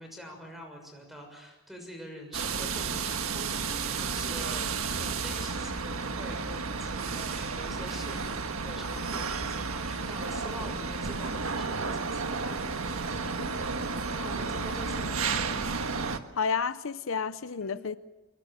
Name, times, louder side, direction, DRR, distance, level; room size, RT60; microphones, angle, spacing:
voice 1, 0.0-4.7 4.9-12.8 14.1-15.6 17.6-17.9, equal, ahead, 6.6 m, -45 dB
sound 1, 2.3-16.2, right 4 dB, 85° right, 1.6 m, -32 dB
voice 2, 16.4-18.0, left 5 dB, 70° left, 0.7 m, -31 dB
25.0 x 22.5 x 7.5 m
head